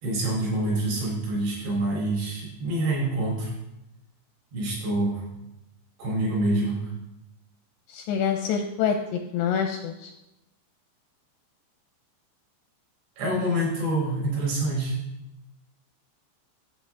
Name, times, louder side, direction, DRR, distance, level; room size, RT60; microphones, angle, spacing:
voice 1, 0.0-3.5 4.5-5.2 6.0-6.9 13.2-15.0, right 1 dB, 65° right, -5 dB, 6.3 m, -26 dB
voice 2, 7.9-10.1, left 7 dB, 85° left, 4 dB, 2.5 m, -26 dB
12.0 x 7.9 x 3.6 m, 0.92 s
omnidirectional pair, 5.5 m